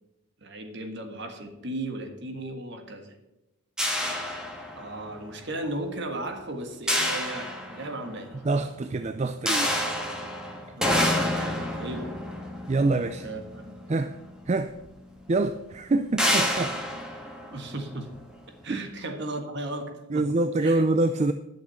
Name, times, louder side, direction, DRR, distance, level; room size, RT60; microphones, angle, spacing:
voice 1, 0.4-3.2 4.8-8.4 10.7-12.2 13.2-13.8 16.2-16.4 17.5-18.1 18.6-20.3 20.6-20.8, right 1 dB, 50° right, 6 dB, 1.6 m, -36 dB
sound 1, 3.8-5.1 6.9-8.2 9.5-13.9 14.8-14.9 15.3-15.5 16.2-18.2, left 1 dB, 5° right, 1.5 m, -28 dB
voice 2, 8.4-9.9 12.7-13.3 13.9-14.2 14.5-14.7 15.3-16.8 18.7-18.8 20.1-21.3, right 2 dB, 30° right, 10 dB, 0.4 m, -25 dB
11.5 x 6.5 x 7.0 m, 0.99 s
head